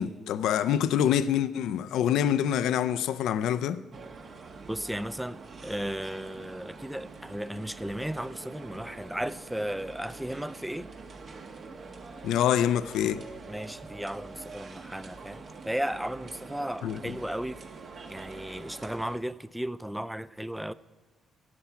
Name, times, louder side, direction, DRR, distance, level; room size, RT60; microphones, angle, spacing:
voice 1, 0.0-3.8 12.2-13.2 16.8-17.0, left 10 dB, 85° left, 0.5 m, -26 dB
sound 1, 3.9-19.2, right 4 dB, 50° right, 1.3 m, -45 dB
voice 2, 4.7-10.9 13.5-17.6 18.1-20.7, equal, 5° right, 0.4 m, -35 dB
15.5 x 5.8 x 8.2 m
cardioid pair, 90°, 0 cm